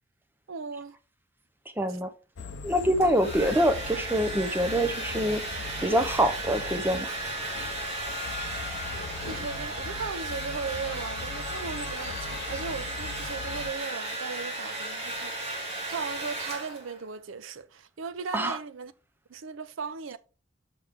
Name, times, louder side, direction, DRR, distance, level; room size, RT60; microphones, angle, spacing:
voice 1, 0.5-1.0 8.9-18.9 19.3-20.2, right 5 dB, 90° right, 0.5 m, -37 dB
voice 2, 1.8-2.1 2.6-5.4 5.8-7.1 18.3-18.6, equal, 10° right, 0.7 m, -25 dB
sound 1, 2.4-13.7, left 5 dB, 60° left, 0.6 m, -40 dB
Domestic sounds home sounds, 2.8-17.0, right 2 dB, 35° right, 2.1 m, -35 dB
6.4 x 6.0 x 3.5 m
head